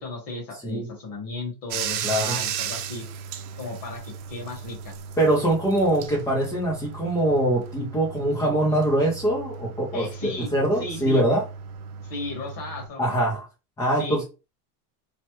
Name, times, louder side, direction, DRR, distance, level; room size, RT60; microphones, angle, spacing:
voice 1, 0.0-3.0 3.6-4.9 9.9-10.5 10.8-11.2 12.0-13.1 14.0-14.2, left 2 dB, 45° left, 0 dB, 1.7 m, -35 dB
Bathtub (filling or washing), 1.7-12.9, right 8 dB, 75° right, 0.7 m, -35 dB
voice 2, 2.0-2.4 5.2-11.4 13.0-13.5 13.8-14.2, right 1 dB, 10° left, -4 dB, 0.6 m, -23 dB
3.3 x 2.1 x 3.0 m, 0.29 s
supercardioid pair, 155°, 44 cm